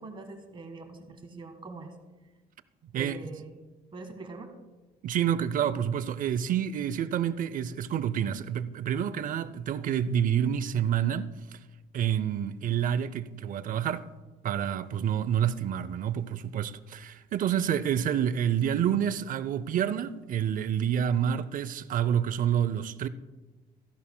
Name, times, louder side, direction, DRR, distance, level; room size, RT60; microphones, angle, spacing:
voice 1, 0.0-1.9 2.9-3.6 3.9-4.5, right 3 dB, 30° right, 1.5 m, -43 dB
voice 2, 5.0-11.3 11.9-14.1 14.4-23.1, right 9 dB, 55° right, 0.6 m, -28 dB
15.0 x 11.0 x 2.2 m
cardioid pair, 110°, 17 cm